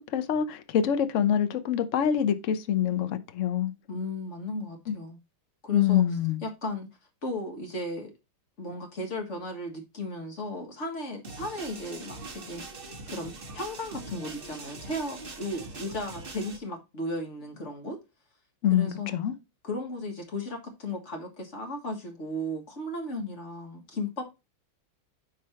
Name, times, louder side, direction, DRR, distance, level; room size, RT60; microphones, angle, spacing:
voice 1, 0.1-3.7 4.9-5.0 5.7-6.4 18.6-19.3, left 9 dB, 65° left, 0.7 m, -25 dB
voice 2, 3.9-5.2 5.6-6.0 6.4-6.9 7.2-8.1 8.6-18.0 18.7-19.1 19.6-24.2, left 1 dB, 35° left, 1.7 m, -35 dB
sound 1, 11.2-16.6, right 3 dB, 30° right, 1.1 m, -42 dB
10.5 x 3.5 x 4.4 m
omnidirectional pair, 2.4 m